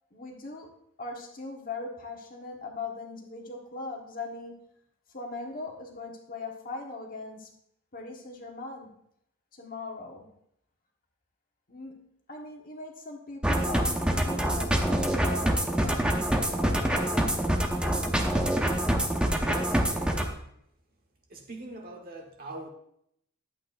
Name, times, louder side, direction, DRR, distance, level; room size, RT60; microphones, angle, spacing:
voice 1, 0.1-0.7 1.0-4.5 5.1-7.5 7.9-8.9 9.5-10.3 11.7-11.9 12.3-18.0, left 3 dB, 40° left, 0 dB, 1.4 m, -40 dB
sound 1, 13.4-20.3, right 1 dB, 5° right, 0.7 m, -26 dB
voice 2, 19.3-20.3 21.3-22.7, right 1 dB, 40° right, 2 dB, 1.3 m, -42 dB
11.5 x 8.3 x 2.6 m, 0.73 s
head